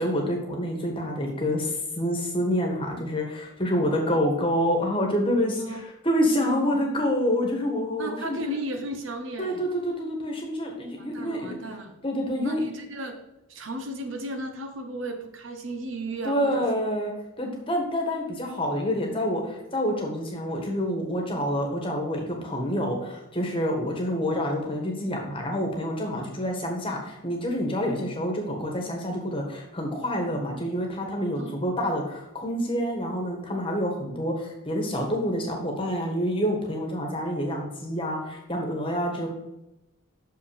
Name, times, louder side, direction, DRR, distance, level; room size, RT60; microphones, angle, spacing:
voice 1, 0.0-8.5 9.4-11.5 12.0-12.6 16.2-17.1 17.4-39.3, equal, 25° left, 1 dB, 1.4 m, -27 dB
voice 2, 6.4-6.8 8.0-9.6 11.0-11.9 12.4-13.2 13.5-16.6 31.4-31.6, right 1 dB, 60° right, 5 dB, 1.0 m, -35 dB
6.5 x 5.6 x 5.0 m, 0.94 s
head